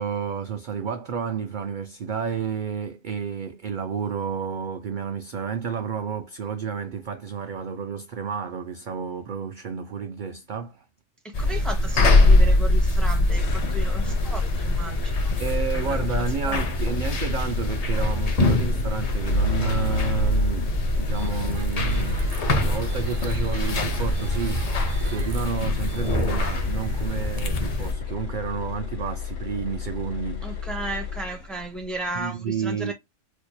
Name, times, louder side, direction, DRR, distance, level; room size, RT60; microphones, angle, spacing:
voice 1, 0.0-10.8 15.4-22.2 22.6-24.7 25.1-30.6 32.2-32.9, right 7 dB, 60° right, 0.5 m, -31 dB
voice 2, 11.2-15.4 15.7-16.6 30.4-32.9, right 2 dB, ahead, 0.6 m, -35 dB
sound 1, 11.3-27.9, left 2 dB, 45° left, 0.5 m, -23 dB
sound 2, 13.4-31.6, left 4 dB, 65° left, 1.0 m, -31 dB
sound 3, 21.1-27.0, right 2 dB, 85° right, 1.3 m, -41 dB
4.4 x 2.8 x 2.2 m
omnidirectional pair, 1.3 m